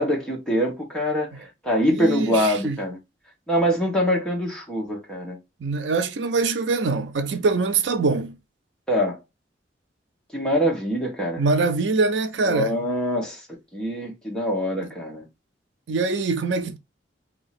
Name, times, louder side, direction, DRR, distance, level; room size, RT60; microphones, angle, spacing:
voice 1, 0.0-3.0 3.5-5.4 8.9-9.2 10.3-11.4 12.4-13.4 13.7-15.3, equal, 5° left, 1.2 m, -24 dB
voice 2, 1.9-2.8 5.6-8.4 11.4-12.8 15.9-16.8, right 3 dB, 85° right, 0.5 m, -23 dB
2.8 x 2.7 x 4.1 m
head